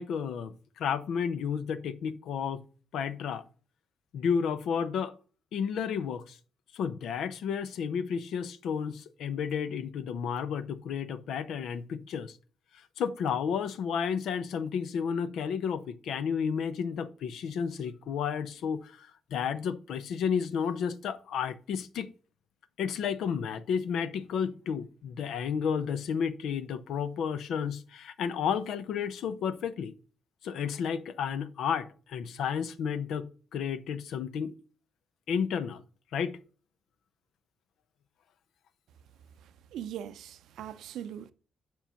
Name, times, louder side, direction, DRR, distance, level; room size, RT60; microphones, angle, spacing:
voice 1, 0.0-2.6 2.9-3.4 4.1-5.1 5.5-6.4 6.7-12.3 13.0-22.1 22.8-29.9 30.4-34.5 35.3-35.8 36.1-36.4, left 7 dB, 80° left, 0.7 m, -32 dB
voice 2, 39.4-41.3, right 10 dB, 90° right, 0.6 m, -41 dB
7.5 x 5.5 x 5.7 m
cardioid pair, 115°, 0 cm